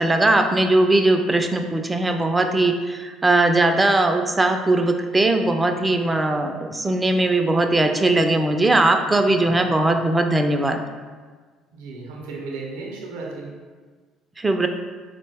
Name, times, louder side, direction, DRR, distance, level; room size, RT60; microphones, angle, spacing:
voice 1, 0.0-10.8 14.4-14.7, right 2 dB, 20° right, 5 dB, 0.3 m, -19 dB
voice 2, 9.0-9.7 11.7-13.5, right 3 dB, 75° right, -1 dB, 0.5 m, -35 dB
3.9 x 2.1 x 3.3 m, 1.4 s
hypercardioid pair, 55°, 0 cm